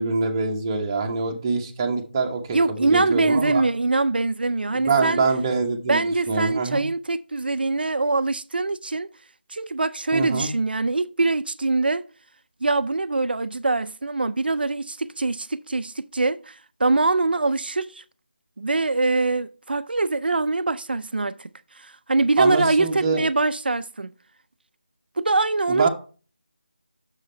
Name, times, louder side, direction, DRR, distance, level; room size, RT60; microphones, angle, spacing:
voice 1, 0.0-3.6 4.7-6.9 10.1-10.5 22.4-23.2 25.7-25.9, right 4 dB, 20° right, 1.0 m, -24 dB
voice 2, 2.5-5.2 5.9-9.1 9.5-12.1 12.6-18.0 18.6-21.5 21.8-24.1 25.2-25.9, right 3 dB, 65° right, 0.6 m, -23 dB
8.0 x 6.7 x 4.4 m
figure-of-eight pair, 165°, 6 cm